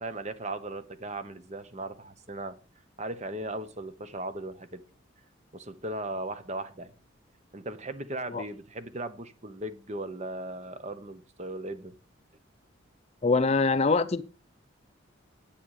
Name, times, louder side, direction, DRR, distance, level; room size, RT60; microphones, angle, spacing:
voice 1, 0.0-2.6 3.0-4.8 5.5-6.9 7.5-11.9, right 2 dB, 35° right, 12 dB, 1.0 m, -37 dB
voice 2, 13.2-14.2, left 4 dB, 30° left, 12 dB, 0.5 m, -24 dB
10.0 x 8.7 x 4.8 m, 0.36 s
head